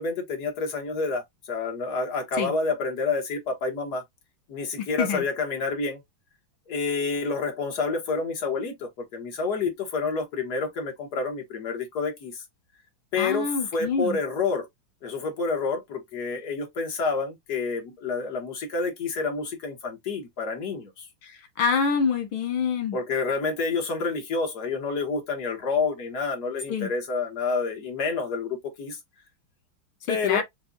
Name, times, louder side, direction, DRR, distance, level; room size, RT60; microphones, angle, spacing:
voice 1, 0.0-4.0 4.5-6.0 6.7-12.4 13.1-14.7 15.0-21.1 22.9-29.0 30.1-30.4, left 4 dB, 55° left, 1.7 m, -28 dB
voice 2, 13.2-14.2 21.2-23.0 26.7-26.9 30.1-30.4, left 5 dB, 85° left, 2.2 m, -26 dB
6.7 x 2.4 x 2.5 m
omnidirectional pair, 2.3 m